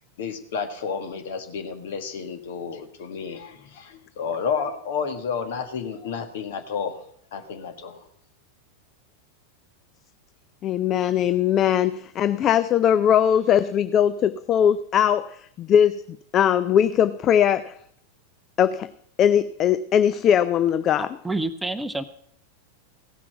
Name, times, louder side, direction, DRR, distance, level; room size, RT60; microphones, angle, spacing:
voice 1, 0.2-7.0 7.3-8.1, left 6 dB, 55° left, 6 dB, 1.5 m, -31 dB
voice 2, 10.6-16.0 16.3-17.8 18.6-18.9 19.2-21.2, left 9 dB, 30° left, 13 dB, 0.4 m, -20 dB
voice 3, 21.0-22.0, right 2 dB, 5° right, 10 dB, 0.7 m, -28 dB
16.0 x 5.9 x 7.9 m, 0.67 s
figure-of-eight pair, 90°, 0 cm